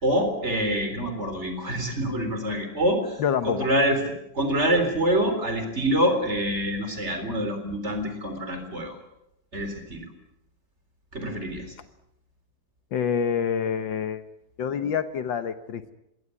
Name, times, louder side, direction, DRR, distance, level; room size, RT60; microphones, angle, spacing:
voice 1, 0.0-3.2 3.4-4.0 4.3-9.0 9.5-10.1 11.1-11.7, equal, 30° right, 7 dB, 4.3 m, -26 dB
voice 2, 3.2-3.7 12.9-14.2 14.6-15.9, left 7 dB, 65° left, 11 dB, 1.7 m, -27 dB
22.5 x 17.5 x 9.7 m, 0.87 s
omnidirectional pair, 2.3 m